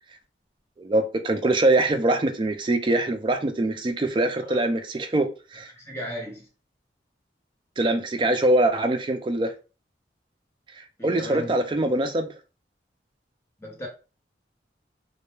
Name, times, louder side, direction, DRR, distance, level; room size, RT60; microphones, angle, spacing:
voice 1, 0.8-5.7 7.8-9.5 10.8-12.3, right 2 dB, 25° right, 0.3 m, -23 dB
voice 2, 5.8-6.5 11.0-11.6 13.6-13.9, equal, 15° left, 0.7 m, -36 dB
2.2 x 2.1 x 3.0 m
head